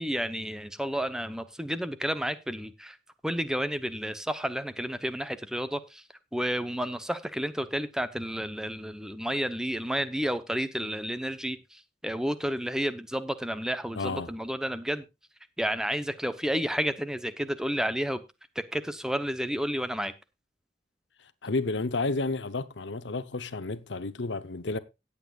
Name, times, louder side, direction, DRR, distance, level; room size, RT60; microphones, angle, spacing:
voice 1, 0.0-3.0 3.2-6.0 6.3-15.0 15.6-18.2 18.7-20.1, equal, 5° right, 0.8 m, -31 dB
voice 2, 14.0-14.3 21.2-24.8, left 3 dB, 85° left, 0.9 m, -31 dB
17.5 x 8.4 x 2.4 m
head